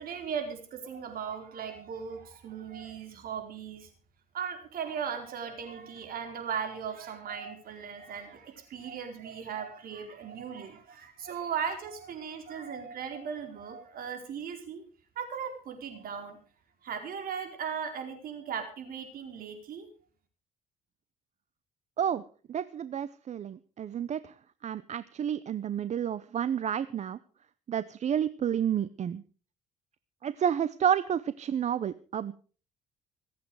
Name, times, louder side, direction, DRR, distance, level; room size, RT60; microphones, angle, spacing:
voice 1, 0.0-3.9 4.3-14.8 15.2-16.4 16.8-19.9, right 7 dB, 60° right, 5 dB, 4.3 m, -37 dB
voice 2, 22.5-24.3 24.6-27.2 27.7-29.2 30.2-32.3, right 9 dB, 45° right, 15 dB, 0.7 m, -30 dB
25.5 x 8.6 x 4.8 m, 0.39 s
cardioid pair, 110°, 17 cm